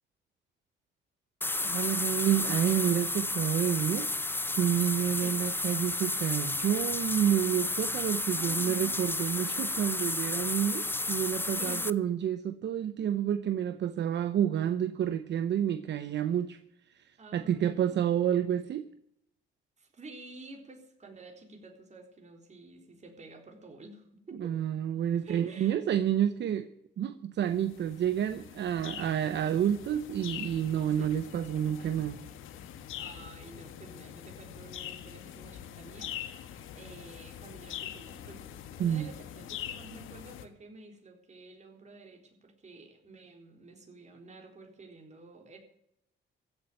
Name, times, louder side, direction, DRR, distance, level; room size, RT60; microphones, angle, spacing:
sound 1, 1.4-11.9, left 2 dB, 10° left, 0.6 m, -32 dB
voice 1, 1.6-4.1 4.6-16.6 16.9-18.8 24.4-26.7 27.0-32.2 38.8-39.1, right 10 dB, 60° right, 11 dB, 0.8 m, -29 dB
voice 2, 8.3-9.0 11.5-11.9 17.2-18.1 19.8-24.6 25.2-25.8 30.9-31.2 33.0-38.4 38.7-45.6, right 3 dB, 35° right, 3 dB, 3.9 m, -50 dB
sound 2, 27.5-40.5, left 10 dB, 90° left, 1.4 m, -44 dB
15.5 x 7.2 x 9.0 m, 0.78 s
cardioid pair, 90°, 20 cm